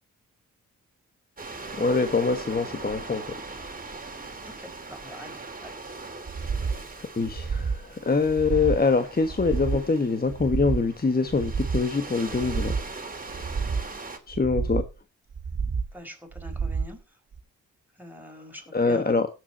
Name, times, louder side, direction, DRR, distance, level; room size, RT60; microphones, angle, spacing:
sound 1, 1.4-14.2, right 3 dB, 25° right, 2.9 m, -40 dB
voice 1, 1.8-3.4 7.2-12.7 13.3-13.5 14.3-14.8 18.7-19.3, left 4 dB, 25° left, 8 dB, 1.4 m, -24 dB
voice 2, 4.4-5.8 15.9-17.0 18.0-19.2, equal, 5° right, 3 dB, 4.7 m, -43 dB
sound 2, 6.3-6.8 7.2-7.8 8.2-8.8 9.3-9.8 10.3-10.9 11.3-11.9 12.3-12.9 13.3-13.9 14.3-14.9 15.3-15.9 16.3-16.9 17.3-17.4, right 5 dB, 50° right, 1.8 m, -29 dB
17.0 x 8.0 x 4.3 m, 0.30 s
cardioid pair, 70°, 34 cm